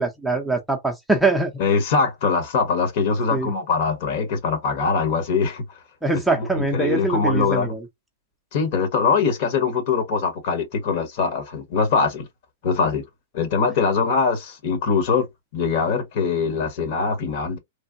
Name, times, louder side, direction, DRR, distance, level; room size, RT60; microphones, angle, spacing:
voice 1, 0.0-1.5 3.3-3.5 6.0-7.8, right 3 dB, 5° right, 0.6 m, -23 dB
voice 2, 1.6-5.6 6.1-7.7 8.5-12.3 12.6-13.0 13.3-15.3 15.5-17.6, left 5 dB, 50° left, 1.3 m, -22 dB
3.2 x 2.1 x 2.6 m
hypercardioid pair, 140°, 0 cm